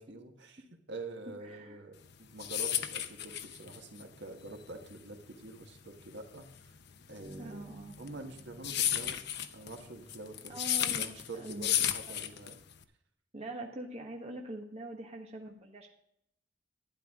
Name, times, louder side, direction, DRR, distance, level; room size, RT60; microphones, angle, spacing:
voice 1, 0.0-6.5 7.1-7.6 8.0-9.2 9.5-10.5 10.9-12.6, right 2 dB, 65° right, 4 dB, 1.5 m, -46 dB
voice 2, 1.3-1.8 7.4-8.0 10.5-11.7 13.3-15.9, right 1 dB, 35° right, 1 dB, 1.3 m, -44 dB
sound 1, 2.0-12.8, left 10 dB, 60° left, 0.7 m, -34 dB
sound 2, 7.2-11.0, right 1 dB, 10° left, 4.6 m, -55 dB
11.5 x 10.0 x 3.6 m, 0.75 s
head